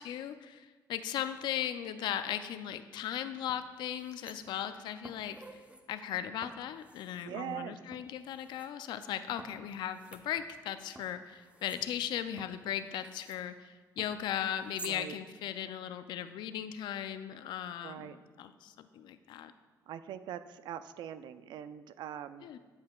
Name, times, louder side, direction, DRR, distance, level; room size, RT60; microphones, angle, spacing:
voice 1, 0.0-5.6 5.9-19.5 22.4-22.6, left 10 dB, 80° left, 11 dB, 0.4 m, -37 dB
sound 1, 2.9-3.1 3.5-4.7 5.0-5.8 6.4-7.3 7.9-8.7 9.4-10.7 11.0-13.4 14.0-15.0 15.3-15.4, right 2 dB, 15° right, 0.6 m, -52 dB
voice 2, 7.2-7.8 14.8-15.2 17.8-18.2 19.9-22.5, right 10 dB, 80° right, 12 dB, 0.3 m, -42 dB
11.5 x 5.5 x 2.3 m, 1.4 s
cardioid pair, 75°, 8 cm